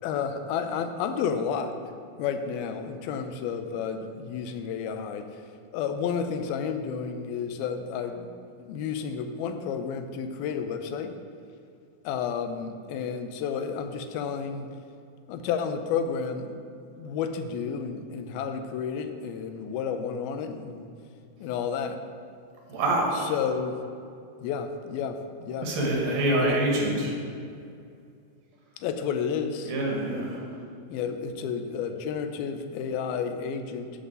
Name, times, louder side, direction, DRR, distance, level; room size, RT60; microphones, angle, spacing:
voice 1, 0.0-1.8 2.2-5.4 5.7-8.3 8.6-11.1 12.0-14.7 15.3-16.6 17.0-20.9 21.4-22.0 23.2-23.8 24.4-25.7 26.4-26.6 28.8-29.7 30.9-33.9, left 6 dB, 85° left, 8 dB, 2.6 m, -31 dB
voice 2, 22.7-23.3 25.6-27.2 29.6-30.5, right 1 dB, 70° right, -2 dB, 3.3 m, -26 dB
11.5 x 3.9 x 7.4 m, 2.4 s
omnidirectional pair, 4.2 m